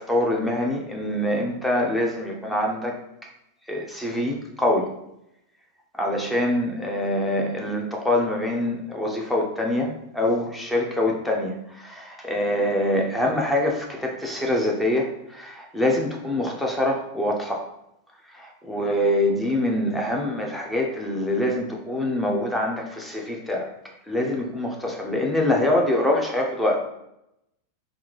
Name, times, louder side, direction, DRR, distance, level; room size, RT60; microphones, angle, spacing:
voice 1, 0.0-3.0 3.7-4.9 6.0-17.7 18.3-23.7 24.1-26.8, left 1 dB, 5° left, 0 dB, 0.6 m, -25 dB
3.6 x 2.5 x 3.2 m, 0.83 s
figure-of-eight pair, 90°, 0 cm